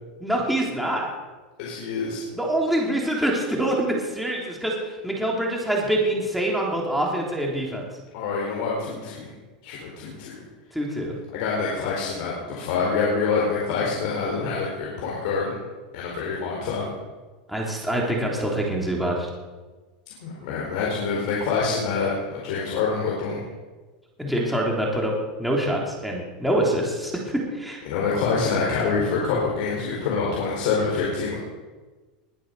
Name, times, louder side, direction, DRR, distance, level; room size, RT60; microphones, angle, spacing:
voice 1, 0.2-1.1 2.3-4.7 5.0-7.9 10.7-11.2 17.5-19.3 24.2-25.1 25.4-27.8, right 1 dB, ahead, -3 dB, 3.3 m, -25 dB
voice 2, 1.6-2.2 8.1-9.3 9.6-10.4 11.3-15.5 15.9-16.9 20.2-23.4 27.9-31.4, left 4 dB, 65° left, -4 dB, 4.6 m, -26 dB
21.0 x 7.9 x 6.8 m, 1.3 s
supercardioid pair, 135°, 5 cm